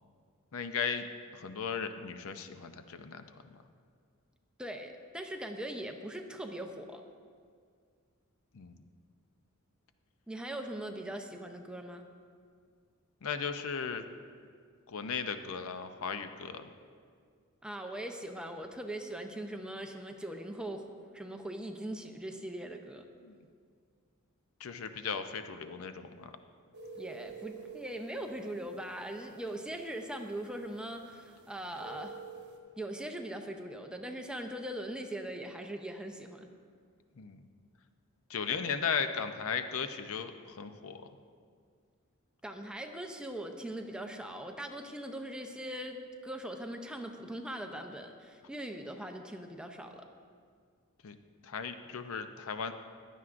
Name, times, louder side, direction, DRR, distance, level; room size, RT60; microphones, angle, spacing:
voice 1, 0.5-1.1 1.3-3.2 8.5-8.8 13.2-14.1 14.9-16.7 23.2-23.4 24.6-26.3 37.2-37.4 38.3-41.0 51.0-51.2 51.4-52.7, left 6 dB, 65° left, 9 dB, 0.6 m, -36 dB
voice 2, 4.6-7.0 10.3-12.0 17.6-20.9 21.1-23.0 27.0-32.2 32.8-36.5 42.4-50.1, right 1 dB, 5° right, 4 dB, 0.6 m, -41 dB
sound 1, 26.7-32.6, right 5 dB, 50° right, 1.3 m, -50 dB
15.5 x 11.0 x 2.5 m, 2.1 s
head